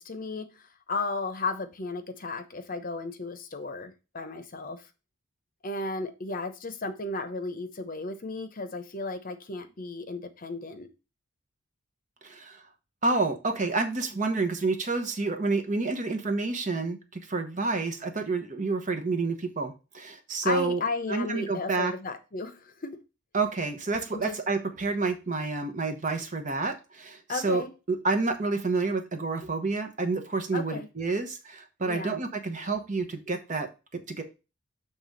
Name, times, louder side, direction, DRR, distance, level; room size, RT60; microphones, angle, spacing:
voice 1, 0.0-4.9 5.6-10.9 20.4-23.0 24.1-24.4 27.3-27.7 30.5-30.9 31.9-32.2, left 3 dB, 40° left, 0.8 m, -34 dB
voice 2, 12.2-12.6 13.0-20.8 21.1-21.9 23.3-34.2, right 3 dB, 35° right, 1.0 m, -29 dB
7.0 x 3.5 x 5.2 m
head